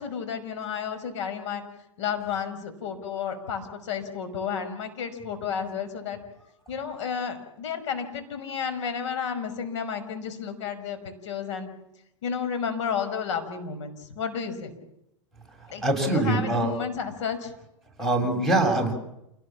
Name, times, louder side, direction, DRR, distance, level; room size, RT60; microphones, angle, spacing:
voice 1, 0.0-1.6 2.0-6.2 6.7-11.7 12.2-14.8 15.7-17.5 18.1-18.3, left 7 dB, 65° left, 7 dB, 5.7 m, -32 dB
voice 2, 15.8-16.7 18.0-18.9, right 2 dB, ahead, 0 dB, 7.2 m, -23 dB
28.5 x 19.0 x 7.5 m, 0.84 s
hypercardioid pair, 105°, 16 cm